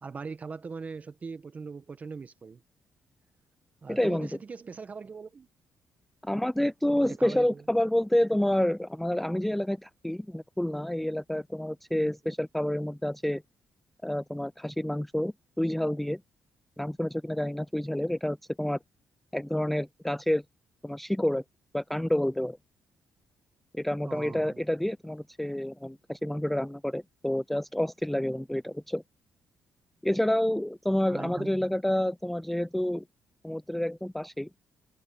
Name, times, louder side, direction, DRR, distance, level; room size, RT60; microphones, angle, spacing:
voice 1, 0.0-2.6 3.8-5.5 6.9-7.6 24.0-24.6 31.1-31.5, right 5 dB, 35° right, 1.6 m, -40 dB
voice 2, 3.9-4.3 6.2-13.4 14.0-16.2 16.8-18.8 19.3-20.4 20.8-21.4 21.7-22.6 23.7-29.0 30.0-33.0 33.4-34.5, left 1 dB, 5° left, 0.4 m, -29 dB
cardioid pair, 110°, 5 cm